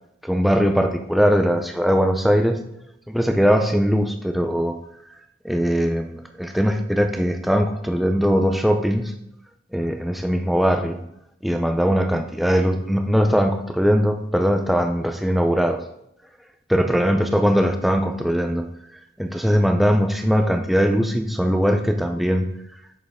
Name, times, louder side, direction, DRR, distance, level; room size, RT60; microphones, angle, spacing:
voice 1, 0.2-2.6 3.1-4.8 5.4-6.1 6.4-9.1 9.7-11.0 11.4-15.8 16.7-18.7 19.2-22.5, equal, ahead, 5 dB, 0.4 m, -20 dB
7.1 x 6.6 x 3.5 m, 0.79 s
head